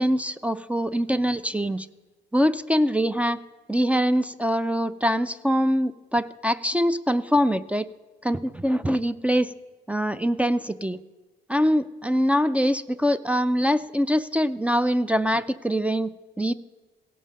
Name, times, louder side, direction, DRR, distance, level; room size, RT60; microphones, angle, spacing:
voice 1, 0.0-1.9 2.3-3.4 3.7-7.9 8.2-9.5 9.9-11.0 11.5-16.5, equal, 5° right, 8 dB, 0.3 m, -23 dB
16.5 x 5.5 x 6.4 m, 1.3 s
cardioid pair, 90°, 20 cm